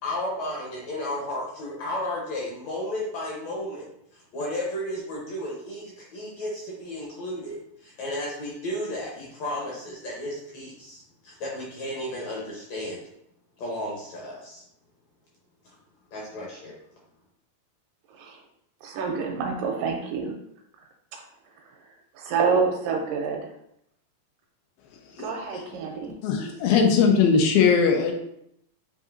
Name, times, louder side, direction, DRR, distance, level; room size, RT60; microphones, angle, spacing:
voice 1, 0.0-3.9 4.1-13.0 13.6-14.6 16.1-16.7, left 1 dB, 70° left, -4 dB, 1.8 m, -33 dB
voice 2, 18.8-20.3 22.2-23.5 25.2-26.2, right 5 dB, 80° right, 2 dB, 2.1 m, -27 dB
voice 3, 26.2-28.1, left 6 dB, 90° left, 3 dB, 2.5 m, -19 dB
7.6 x 2.6 x 2.5 m, 0.74 s
omnidirectional pair, 4.1 m